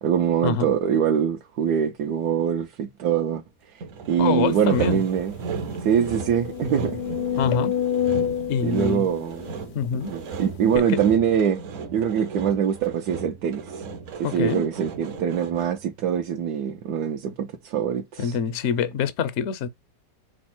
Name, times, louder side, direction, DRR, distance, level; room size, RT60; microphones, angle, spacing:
voice 1, 0.0-3.4 4.1-5.3 5.8-7.0 8.6-9.5 10.1-11.6 11.9-13.7 14.2-18.4, right 8 dB, 75° right, 1.1 m, -23 dB
Sawing, 3.8-15.9, right 5 dB, 60° right, 0.9 m, -36 dB
voice 2, 4.2-5.0 7.4-7.7 8.5-9.0 9.7-10.1 10.7-11.0 14.2-14.6 18.2-19.7, left 7 dB, 70° left, 0.7 m, -25 dB
sound 1, 4.7-4.8 5.2-5.3 5.9-10.1 10.7-10.8, left 9 dB, 90° left, 1.3 m, -28 dB
5.2 x 2.0 x 4.3 m
omnidirectional pair, 1.8 m